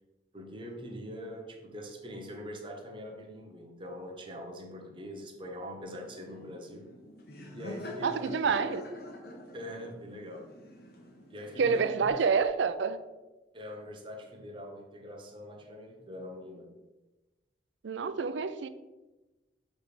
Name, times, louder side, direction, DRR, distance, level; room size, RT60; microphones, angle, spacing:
voice 1, 0.3-6.9 7.5-8.7 9.5-10.5 11.3-12.2 13.5-16.7, equal, 25° right, 0.9 m, -43 dB
Laughter, 5.8-12.1, left 1 dB, 55° left, 1.0 m, -46 dB
voice 2, 8.0-8.8 11.6-13.0 17.8-18.7, right 5 dB, 75° right, 0.4 m, -28 dB
6.7 x 3.3 x 5.0 m
head